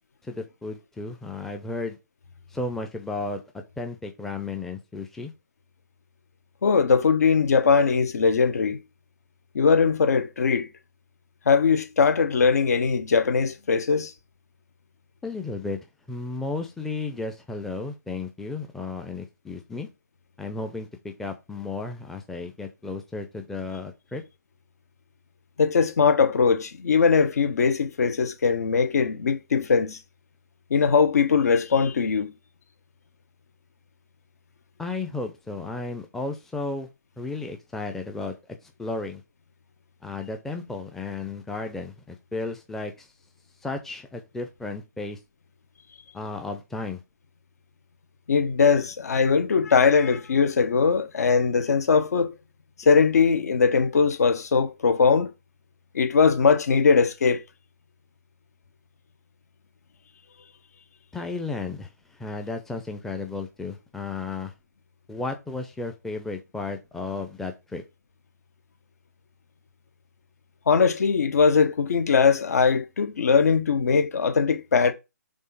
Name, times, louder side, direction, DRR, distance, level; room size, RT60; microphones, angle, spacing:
voice 1, 0.2-2.0 2.5-3.4 3.8-5.3 15.2-15.8 16.1-19.9 20.4-24.2 34.8-36.9 37.2-38.4 38.8-39.2 40.0-43.1 43.6-45.2 46.1-47.0 61.1-61.9 62.2-64.5 65.1-67.8, left 3 dB, 5° left, 0.6 m, -33 dB
voice 2, 6.6-8.8 9.5-10.7 11.5-14.1 25.6-30.0 30.7-32.3 48.3-52.3 52.8-55.3 55.9-57.4 70.7-74.9, left 5 dB, 60° left, 1.3 m, -20 dB
5.4 x 3.8 x 5.5 m
hypercardioid pair, 145°, 9 cm